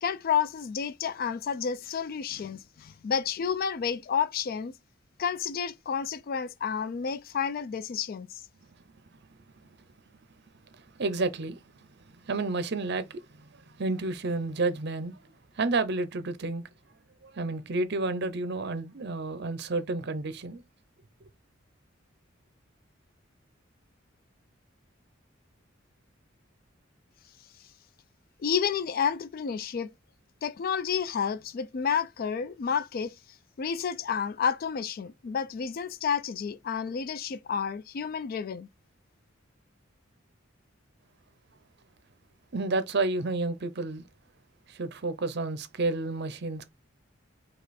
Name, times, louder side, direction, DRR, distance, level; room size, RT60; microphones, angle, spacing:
voice 1, 0.0-4.7 5.2-8.4 28.4-29.9 30.4-33.1 33.6-38.7, left 7 dB, 50° left, 0.3 m, -30 dB
voice 2, 10.8-11.6 12.2-15.2 15.6-16.6 17.2-20.6 42.5-44.0 44.7-46.7, right 3 dB, 55° right, 0.7 m, -30 dB
5.1 x 2.4 x 4.1 m
head